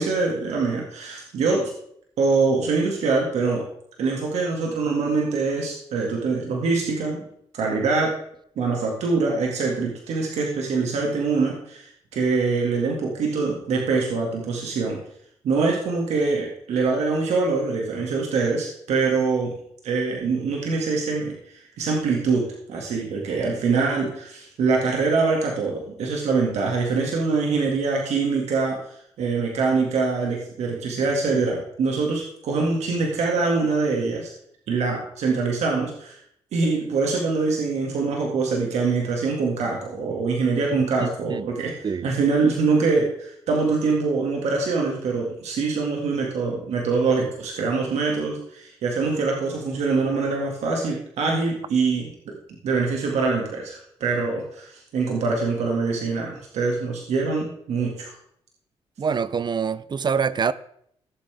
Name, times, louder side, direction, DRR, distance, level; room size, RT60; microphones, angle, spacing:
voice 1, 0.0-1.7 2.2-3.6 4.0-7.2 7.5-8.1 8.6-15.0 15.4-19.5 19.8-34.3 34.7-36.2 36.5-52.3 52.6-58.1, right 4 dB, 80° right, 2.1 m, -24 dB
voice 2, 41.0-41.5 41.8-42.1 59.0-60.5, right 6 dB, 40° right, 0.5 m, -25 dB
16.5 x 7.5 x 3.5 m
cardioid pair, 80°, 11 cm